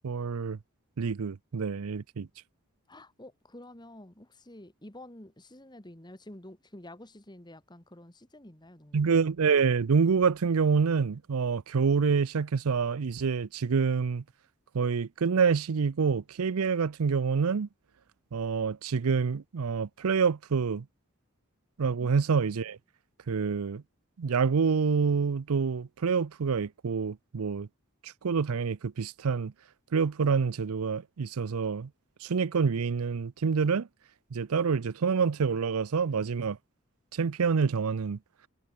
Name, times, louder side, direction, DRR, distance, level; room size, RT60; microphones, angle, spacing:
voice 1, 0.0-0.6 1.0-2.3 8.9-14.2 14.7-17.7 18.3-20.9 21.8-22.8 23.3-23.8 24.2-27.7 28.0-29.5 29.9-31.9 32.2-33.9 34.3-36.6 37.1-38.2, right 5 dB, 85° right, 0.5 m, -27 dB
voice 2, 2.9-9.0 22.0-22.1, left 1 dB, 20° left, 2.1 m, -49 dB
head